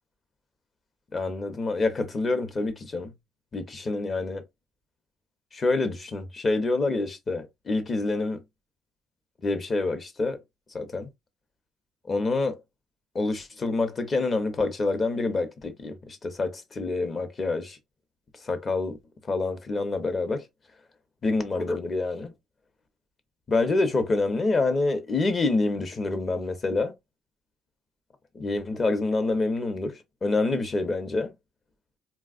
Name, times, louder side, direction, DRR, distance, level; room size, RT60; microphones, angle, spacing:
voice 1, 1.1-3.1 3.5-4.4 5.5-8.4 9.4-10.4 10.7-11.1 12.1-12.6 13.1-17.8 18.4-19.0 19.3-20.4 21.2-22.3 23.5-26.9 28.3-31.3, left 3 dB, 35° left, 0.8 m, -27 dB
3.4 x 2.3 x 2.4 m
cardioid pair, 85°, 0 cm